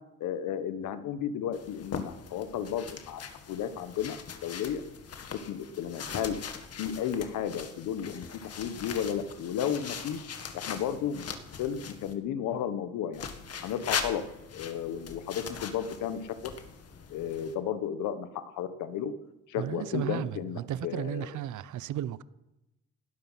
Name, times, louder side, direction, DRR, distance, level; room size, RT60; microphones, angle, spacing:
voice 1, 0.2-3.2 3.5-4.8 5.5-6.3 6.7-8.3 8.6-10.3 10.5-11.2 11.6-13.2 13.6-14.2 14.5-16.4 17.1-19.1 19.5-21.3, left 9 dB, 90° left, 1.4 m, -33 dB
sound 1, 1.5-12.1 13.1-17.6, left 6 dB, 55° left, 2.0 m, -40 dB
voice 2, 19.6-22.2, right 11 dB, 75° right, 0.8 m, -34 dB
19.0 x 12.5 x 5.9 m
cardioid pair, 90°, 30 cm